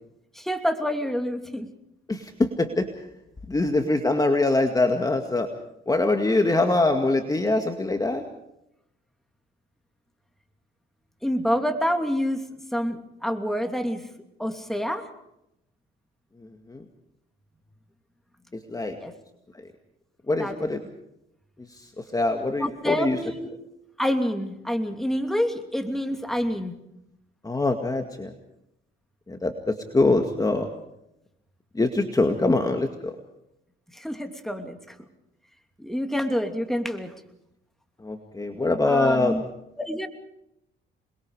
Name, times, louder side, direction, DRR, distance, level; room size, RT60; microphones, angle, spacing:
voice 1, 0.3-1.7 11.2-12.4 12.7-14.1 14.4-15.1 19.0-19.1 20.4-20.6 22.6-23.5 24.0-26.8 33.9-35.0 35.8-37.1 38.8-39.4 39.8-40.1, equal, ahead, 5 dB, 2.8 m, -27 dB
voice 2, 2.1-2.9 3.5-5.5 5.9-8.2 16.7-16.8 18.7-19.0 20.3-20.8 21.8-23.2 27.4-28.3 29.3-30.7 31.7-33.1 38.0-39.3, left 2 dB, 20° left, 5 dB, 2.1 m, -23 dB
27.5 x 22.0 x 4.9 m, 0.81 s
cardioid pair, 90°, 20 cm